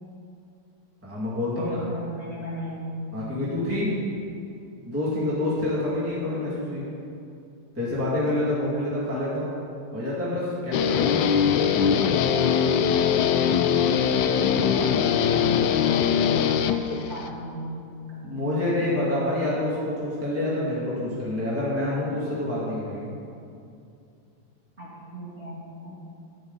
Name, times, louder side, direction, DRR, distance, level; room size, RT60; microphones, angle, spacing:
voice 1, 1.0-1.8 3.1-3.9 4.9-6.9 7.7-9.5 9.9-11.7 18.2-23.1, left 1 dB, 5° right, -8 dB, 2.2 m, -27 dB
voice 2, 1.5-3.0 13.9-15.8 16.4-18.6 24.8-26.0, equal, 30° right, -8 dB, 2.8 m, -38 dB
Guitar, 10.7-17.3, left 7 dB, 75° left, 1.1 m, -22 dB
13.5 x 9.6 x 4.1 m, 2.5 s
omnidirectional pair, 2.4 m